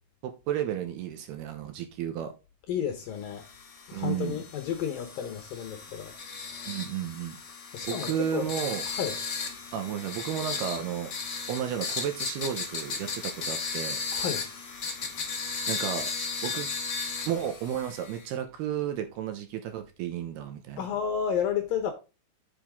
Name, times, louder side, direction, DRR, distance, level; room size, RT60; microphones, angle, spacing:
voice 1, 0.2-2.3 3.9-4.4 6.7-7.4 7.9-8.8 9.7-11.1 11.5-14.0 15.7-16.1 16.4-16.7 17.3-20.8, right 9 dB, 75° right, 2.6 m, -32 dB
voice 2, 2.7-3.5 3.9-6.1 7.7-8.5 8.9-9.2 14.1-14.5 20.8-21.9, left 8 dB, 70° left, 2.3 m, -31 dB
sound 1, 3.3-18.2, left 4 dB, 85° left, 0.9 m, -36 dB
8.5 x 7.3 x 3.6 m
omnidirectional pair, 5.2 m